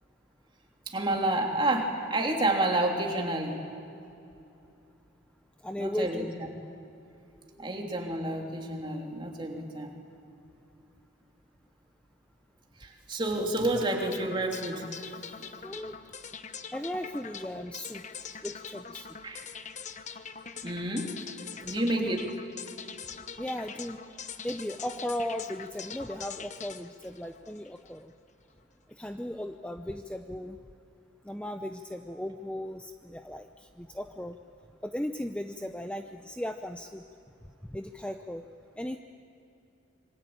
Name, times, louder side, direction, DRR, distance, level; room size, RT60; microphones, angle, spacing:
voice 1, 0.9-3.6 5.8-6.3 7.6-9.9 12.8-14.9 15.4-15.5 19.2-19.4 20.6-21.1 21.6-22.2, right 1 dB, 25° right, 1 dB, 3.3 m, -29 dB
voice 2, 5.6-6.3 7.5-7.6 15.6-15.9 16.7-18.0 18.4-19.1 21.6-22.1 23.4-24.0 24.4-28.1 28.9-30.6 31.2-34.4 34.8-37.0 37.7-38.4 38.8-39.0, left 1 dB, 5° left, 6 dB, 0.6 m, -36 dB
sound 1, 13.9-28.0, left 6 dB, 35° left, 1.0 m, -43 dB
27.0 x 24.5 x 8.9 m, 2.7 s
head